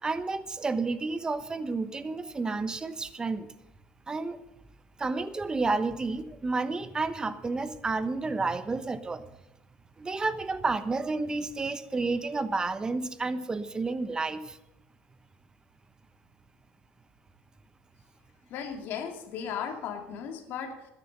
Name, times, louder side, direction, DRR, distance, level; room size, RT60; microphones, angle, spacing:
voice 1, 0.0-3.5 4.1-4.4 5.0-9.3 10.0-14.6, right 3 dB, 20° right, 12 dB, 1.0 m, -31 dB
voice 2, 18.5-20.9, left 7 dB, 70° left, 4 dB, 2.4 m, -36 dB
13.0 x 10.0 x 6.7 m, 0.87 s
cardioid pair, 110°, 4 cm